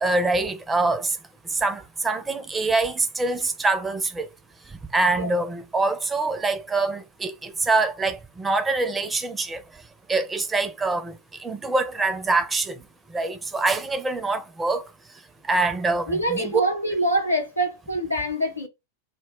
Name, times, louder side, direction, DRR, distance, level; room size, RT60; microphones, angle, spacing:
voice 1, 0.0-1.1 1.6-4.3 4.9-9.6 10.1-11.1 11.4-12.7 13.1-14.8 15.5-16.6, right 3 dB, 15° right, 0.4 m, -24 dB
voice 2, 16.1-18.7, right 1 dB, 90° left, 0.7 m, -25 dB
2.2 x 2.0 x 3.5 m
figure-of-eight pair, 90°, 0 cm